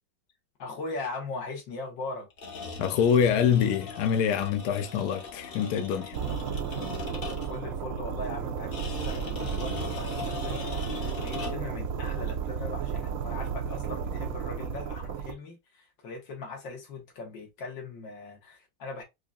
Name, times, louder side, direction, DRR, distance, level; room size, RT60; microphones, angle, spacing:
voice 1, 0.6-2.3 7.5-19.0, left 3 dB, 90° left, 2.0 m, -40 dB
sound 1, 2.3-7.7 8.7-11.8, left 4 dB, 45° left, 0.7 m, -40 dB
voice 2, 2.8-6.2, left 8 dB, 70° left, 1.1 m, -25 dB
sound 2, 6.1-15.3, right 7 dB, 70° right, 0.8 m, -33 dB
4.9 x 2.6 x 2.4 m
omnidirectional pair, 1.9 m